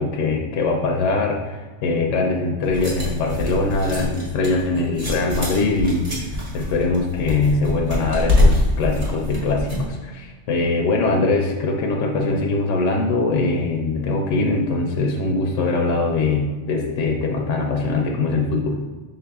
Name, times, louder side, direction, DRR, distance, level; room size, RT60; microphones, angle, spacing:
voice 1, 0.0-18.8, left 3 dB, 70° left, 1 dB, 0.9 m, -22 dB
sound 1, 2.6-9.9, left 1 dB, 30° right, 0.8 m, -24 dB
5.6 x 3.7 x 2.3 m, 1.3 s
omnidirectional pair, 1.4 m